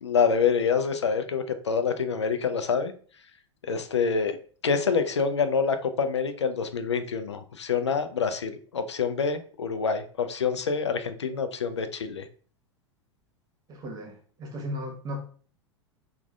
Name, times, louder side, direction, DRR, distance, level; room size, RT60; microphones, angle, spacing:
voice 1, 0.0-2.9 3.7-4.4 4.6-12.2, left 5 dB, 75° left, 9 dB, 0.4 m, -26 dB
voice 2, 13.7-15.2, equal, 25° right, 2 dB, 1.1 m, -36 dB
4.5 x 2.3 x 2.3 m, 0.43 s
figure-of-eight pair, 90°, 15 cm